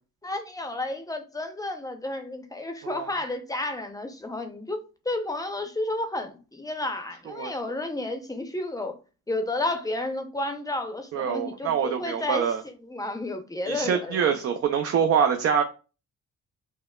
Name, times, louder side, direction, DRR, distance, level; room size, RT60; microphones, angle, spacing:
voice 1, 0.2-9.0 9.3-12.5 12.8-14.4, left 2 dB, 10° left, 0.6 m, -31 dB
voice 2, 11.1-12.6 13.6-15.6, right 7 dB, 50° right, 0.5 m, -25 dB
5.4 x 2.1 x 2.2 m
cardioid pair, 90°, 30 cm